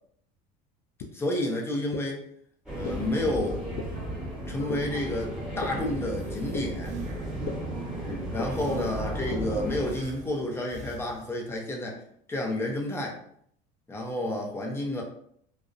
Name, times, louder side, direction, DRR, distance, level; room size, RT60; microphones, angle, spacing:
sound 1, 1.0-1.1 1.9-2.0 2.8-2.9 3.8-3.9 4.7-4.8 5.6-5.7 6.5-6.6 7.5-7.6 8.4-8.5 9.3-9.4, left 5 dB, 60° left, 0.4 m, -33 dB
voice 1, 1.1-2.2 2.7-3.6 4.5-6.9 8.0-12.0 12.3-13.2 13.9-15.0, left 1 dB, 10° left, 0 dB, 0.6 m, -30 dB
sound 2, 2.7-9.9, right 1 dB, 5° right, 1.1 m, -34 dB
Breathing, 5.7-7.7 8.5-9.4 9.9-11.7, right 2 dB, 35° right, 0.5 m, -48 dB
2.4 x 2.1 x 2.4 m, 0.66 s
supercardioid pair, 115°, 20 cm